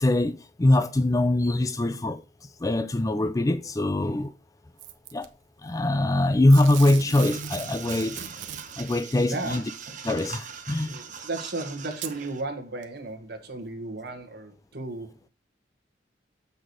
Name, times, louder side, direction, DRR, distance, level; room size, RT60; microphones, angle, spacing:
voice 1, 0.0-2.2 2.6-4.3 5.1-5.3 5.6-8.2 8.8-9.6 10.0-11.0, left 1 dB, 20° left, 0.4 m, -23 dB
Packing tape duct tape / Tearing, 4.8-5.3 6.5-9.0 10.2-10.3 11.2-11.3 11.9-12.2 12.8-12.9, right 8 dB, 80° right, 0.9 m, -38 dB
sound 1, 7.1-12.4, right 6 dB, 40° right, 1.2 m, -41 dB
voice 2, 9.3-9.6 10.9-15.2, right 2 dB, 55° right, 1.7 m, -35 dB
7.1 x 6.3 x 4.7 m
head